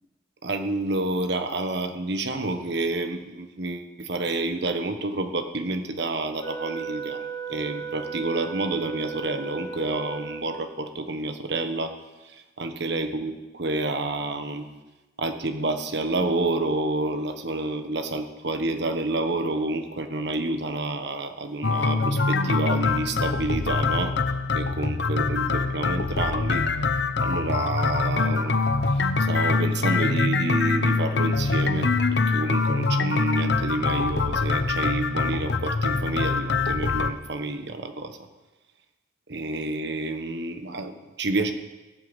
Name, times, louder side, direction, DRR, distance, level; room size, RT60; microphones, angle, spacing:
voice 1, 0.4-7.2 7.5-11.9 12.2-14.7 15.2-24.1 24.5-26.7 27.2-28.6 28.9-38.2 39.3-41.5, right 2 dB, 65° right, 7 dB, 1.4 m, -29 dB
Wind instrument woodwind instrument, 6.4-10.8, right 6 dB, 25° left, 1.2 m, -35 dB
sound 1, 21.6-37.1, left 3 dB, 65° left, 0.8 m, -24 dB
17.0 x 7.7 x 7.9 m, 1.1 s
head